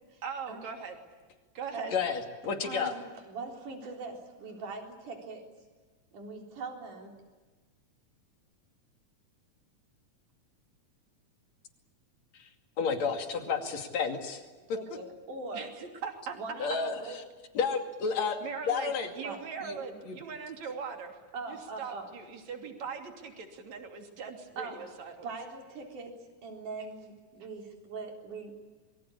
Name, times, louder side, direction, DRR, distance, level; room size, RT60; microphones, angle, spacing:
voice 1, 0.2-1.0 1.5-1.9 15.5-16.4 18.4-21.2 21.5-25.1, right 6 dB, 65° right, 3 dB, 4.2 m, -40 dB
voice 2, 1.9-2.9 12.4-12.5 12.8-14.4 16.6-17.0 17.6-19.1 19.6-19.8 20.1-20.2, left 5 dB, 60° left, 4 dB, 3.7 m, -31 dB
voice 3, 2.4-5.5 6.1-7.1 13.4-13.7 14.6-15.7 16.4-17.2 19.2-19.4 21.3-22.1 24.6-24.9 25.2-26.1 26.4-28.5, right 3 dB, 80° right, 1 dB, 5.3 m, -41 dB
26.5 x 24.0 x 8.6 m, 1.3 s
omnidirectional pair, 3.5 m